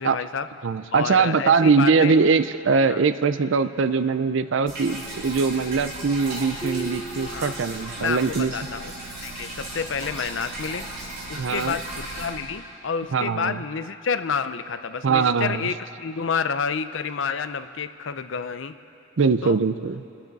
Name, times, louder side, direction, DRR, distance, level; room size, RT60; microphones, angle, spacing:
voice 1, 0.0-0.5 0.9-2.1 2.9-3.0 7.3-7.5 8.0-8.9 9.2-10.9 11.3-18.7 19.4-19.6, left 6 dB, 65° left, 11 dB, 0.6 m, -29 dB
voice 2, 0.6-8.5 11.4-11.8 13.1-13.6 15.0-15.7 19.2-20.0, right 5 dB, 65° right, 12 dB, 0.5 m, -21 dB
sound 1, 4.7-12.3, right 1 dB, 45° right, 4.4 m, -36 dB
sound 2, 6.6-8.3, right 2 dB, 5° right, 0.5 m, -37 dB
27.0 x 13.5 x 4.1 m, 2.9 s
head